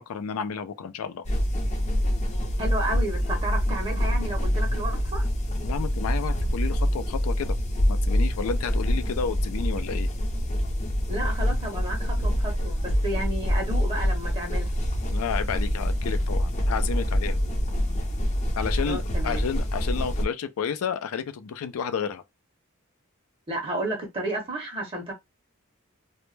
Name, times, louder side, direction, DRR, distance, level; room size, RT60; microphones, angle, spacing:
voice 1, 0.1-1.2 5.6-7.6 7.9-10.1 15.1-17.4 18.6-22.2, left 6 dB, 90° left, 0.4 m, -31 dB
sound 1, 1.2-20.2, equal, 35° left, 0.5 m, -26 dB
voice 2, 2.6-5.2 11.1-14.7 18.8-19.4 23.5-25.1, right 1 dB, 25° right, 0.6 m, -32 dB
2.1 x 2.0 x 3.1 m
head